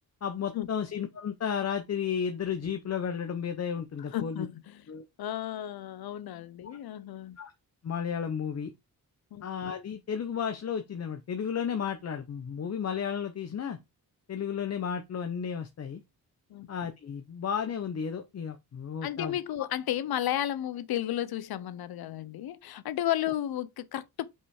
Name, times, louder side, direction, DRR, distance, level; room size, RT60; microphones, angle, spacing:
voice 1, 0.2-4.5 4.9-5.0 7.4-7.5 7.8-8.7 9.4-13.8 14.3-16.0 16.7-19.7, left 7 dB, 45° left, 0.9 m, -33 dB
voice 2, 4.1-4.9 5.2-7.4 9.3-9.4 16.5-16.7 19.0-24.3, left 12 dB, 85° left, 0.8 m, -33 dB
5.7 x 5.4 x 4.8 m
wide cardioid pair, 175°, 36 cm